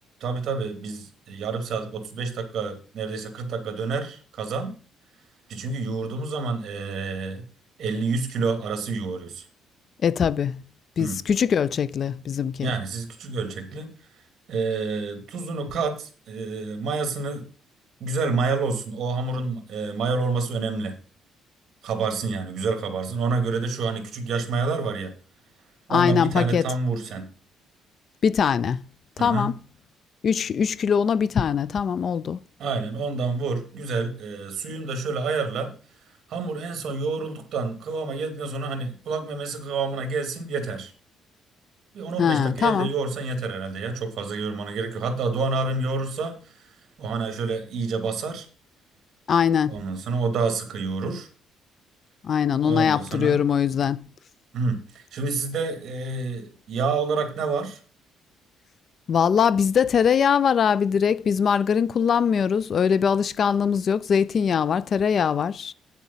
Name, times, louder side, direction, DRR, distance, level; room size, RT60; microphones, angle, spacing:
voice 1, 0.2-4.7 5.5-7.5 7.8-9.4 11.0-11.2 12.6-13.9 14.5-17.4 18.0-21.0 21.8-25.1 25.9-27.3 29.2-29.5 32.6-35.7 36.3-40.9 41.9-46.5 47.0-48.5 49.7-51.3 52.6-53.4 54.5-57.8, right 4 dB, 55° right, 2.6 m, -28 dB
voice 2, 10.0-10.6 11.0-12.7 25.9-26.6 28.2-28.8 29.2-29.5 30.2-32.4 42.2-42.9 49.3-49.7 52.2-54.0 59.1-65.7, left 7 dB, 45° left, 0.4 m, -22 dB
9.2 x 7.4 x 5.6 m
cardioid pair, 120°, 0 cm